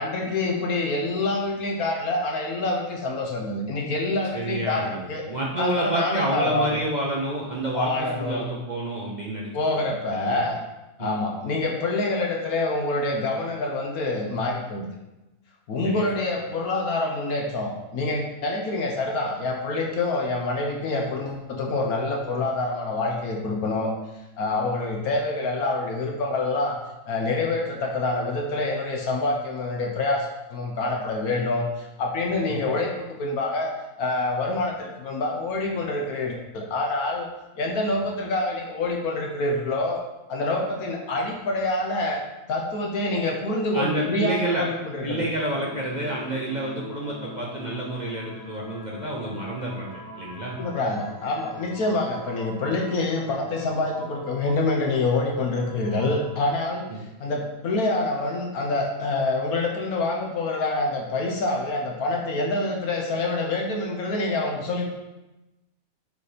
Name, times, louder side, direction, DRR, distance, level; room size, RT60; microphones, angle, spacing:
voice 1, 0.0-5.2 5.6-6.8 7.7-8.5 9.5-10.6 11.0-14.9 15.7-23.9 24.4-26.8 27.1-33.7 34.0-37.3 37.6-40.0 40.3-42.2 42.5-45.2 50.6-56.9 57.2-64.9, left 2 dB, 70° left, 1 dB, 1.3 m, -26 dB
voice 2, 4.3-9.8 10.1-10.4 11.0-11.2 15.8-16.1 32.5-32.6 43.7-44.7 45.0-50.6 56.9-57.0, right 1 dB, 40° right, -3 dB, 0.7 m, -29 dB
sound 1, 45.4-56.6, left 2 dB, 20° left, 0.6 m, -43 dB
6.8 x 4.1 x 5.0 m, 1.0 s
omnidirectional pair, 1.7 m